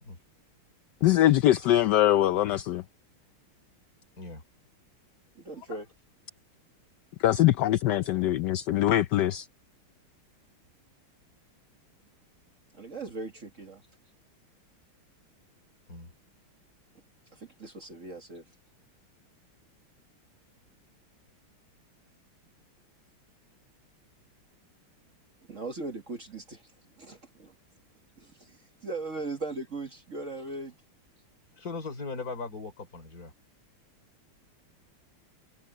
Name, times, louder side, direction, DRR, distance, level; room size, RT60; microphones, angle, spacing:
voice 1, 1.0-2.8 7.2-9.5, left 13 dB, 70° left, 1.0 m, -23 dB
voice 2, 5.4-5.9 12.7-13.8 17.3-18.4 25.5-26.6 27.0-27.5 28.2-30.8, right 3 dB, 40° right, 1.9 m, -39 dB
voice 3, 31.6-33.3, left 4 dB, 40° left, 4.0 m, -38 dB
omnidirectional pair, 2.4 m